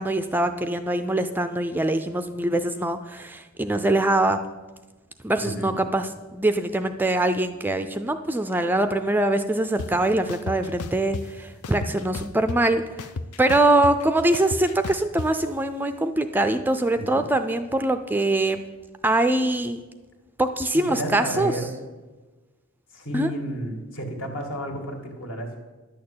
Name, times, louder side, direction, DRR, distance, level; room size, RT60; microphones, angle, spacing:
voice 1, 0.0-4.4 5.2-12.8 13.4-18.6 19.0-19.8 20.4-21.5 23.1-23.3, right 2 dB, 10° right, 9 dB, 0.4 m, -23 dB
voice 2, 5.4-5.8 16.9-17.3 20.7-21.7 22.9-25.6, equal, 60° left, 3 dB, 2.1 m, -32 dB
sound 1, 9.8-9.9 10.3-11.2 11.6-12.7 13.0-15.3, left 3 dB, 80° left, 0.6 m, -32 dB
11.0 x 6.6 x 8.6 m, 1.2 s
head